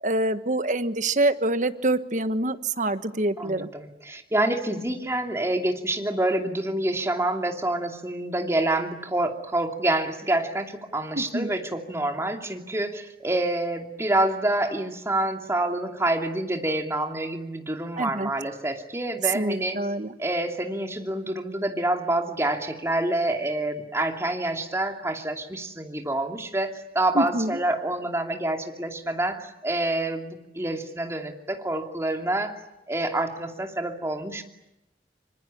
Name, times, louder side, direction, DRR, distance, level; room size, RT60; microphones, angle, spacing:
voice 1, 0.0-3.7 11.1-11.5 18.0-18.3 19.3-20.1 27.1-27.6, right 2 dB, 45° right, 11 dB, 1.4 m, -26 dB
voice 2, 3.4-19.8 20.2-32.6 32.9-34.4, right 1 dB, 15° right, 4 dB, 2.7 m, -27 dB
26.5 x 25.5 x 8.7 m, 0.89 s
head